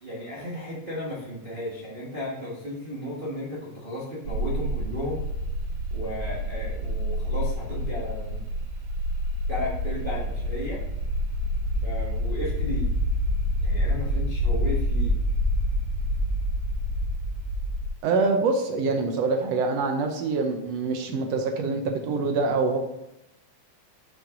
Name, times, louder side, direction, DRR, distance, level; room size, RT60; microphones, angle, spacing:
voice 1, 0.0-5.3 5.9-8.4 9.5-10.8 11.7-12.9 13.6-15.2, left 1 dB, 45° right, -5 dB, 0.7 m, -34 dB
sound 1, 4.3-17.9, equal, 85° right, 2.3 m, -27 dB
voice 2, 18.0-22.8, right 4 dB, 70° right, 4 dB, 1.7 m, -25 dB
7.3 x 5.6 x 3.8 m, 0.90 s
omnidirectional pair, 3.4 m